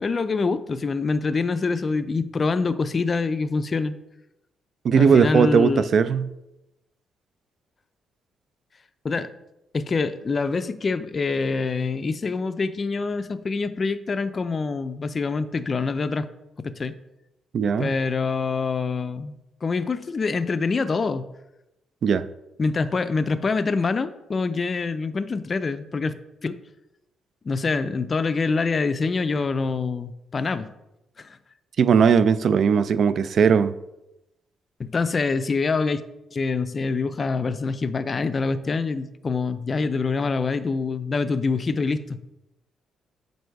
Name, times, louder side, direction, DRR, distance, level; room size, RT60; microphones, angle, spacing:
voice 1, 0.0-3.9 4.9-5.9 9.0-9.3 9.7-16.3 16.6-16.9 17.8-21.2 22.6-26.1 26.4-26.6 27.4-30.7 31.2-31.4 34.8-36.0 36.3-42.0, left 4 dB, 35° left, 12 dB, 0.4 m, -25 dB
voice 2, 4.8-6.3 17.5-17.9 22.0-22.3 31.8-33.7, right 6 dB, 60° right, 15 dB, 0.3 m, -18 dB
7.7 x 2.7 x 4.6 m, 0.92 s
cardioid pair, 90°, 0 cm